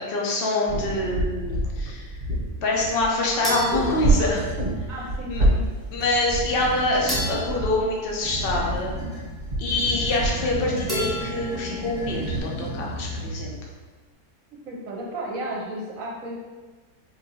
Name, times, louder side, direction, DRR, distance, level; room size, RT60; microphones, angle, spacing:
voice 1, 0.1-2.1 2.6-4.5 5.3-5.5 5.9-8.9 9.6-13.6, left 2 dB, 50° left, -2 dB, 0.8 m, -25 dB
sound 1, 0.7-12.4, right 2 dB, 45° right, 1.2 m, -28 dB
sound 2, 3.4-4.9 7.1-8.9 10.9-12.0, equal, ahead, 0.8 m, -34 dB
sound 3, 3.4-4.7 5.8-7.4 8.2-13.7, right 1 dB, 30° right, 0.9 m, -34 dB
voice 2, 4.9-5.6 14.6-16.4, right 1 dB, 75° right, -2 dB, 1.0 m, -33 dB
4.8 x 2.6 x 2.7 m, 1.3 s
omnidirectional pair, 1.5 m